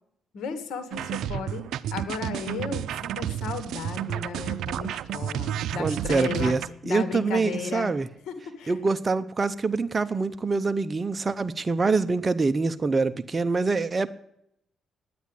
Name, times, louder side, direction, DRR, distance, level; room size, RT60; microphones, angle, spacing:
voice 1, 0.3-1.6 1.9-6.6 6.8-7.9 8.3-8.7, left 5 dB, 75° left, 9 dB, 2.1 m, -34 dB
sound 1, 0.9-6.7, right 10 dB, 80° right, 0.5 m, -31 dB
voice 2, 5.8-8.1 8.7-14.1, right 4 dB, 30° right, 10 dB, 0.6 m, -25 dB
10.0 x 9.4 x 9.8 m, 0.78 s
cardioid pair, 90°, 0 cm